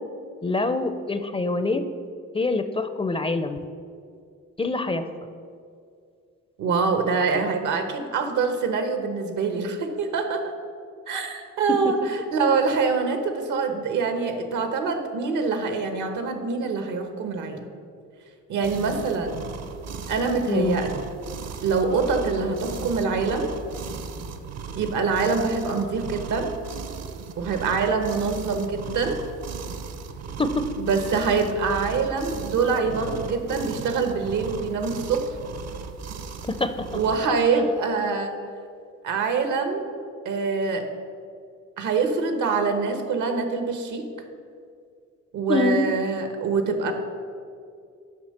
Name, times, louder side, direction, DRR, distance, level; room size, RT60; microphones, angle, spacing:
voice 1, 0.4-1.8 2.3-3.6 4.6-5.1 20.5-20.8 30.4-30.6 36.5-36.9 45.5-45.9, left 3 dB, 20° left, 9 dB, 0.5 m, -25 dB
voice 2, 6.6-10.5 11.1-17.7 18.5-19.4 20.1-21.0 21.6-23.5 24.8-26.5 27.4-29.2 30.8-35.4 36.9-38.3 39.0-39.9 40.2-40.9 41.8-44.1 45.3-46.9, right 4 dB, 80° right, 7 dB, 1.1 m, -25 dB
sound 1, 18.6-37.2, right 6 dB, 60° right, 0.8 m, -37 dB
7.3 x 5.5 x 6.5 m, 2.3 s
cardioid pair, 90°, 30 cm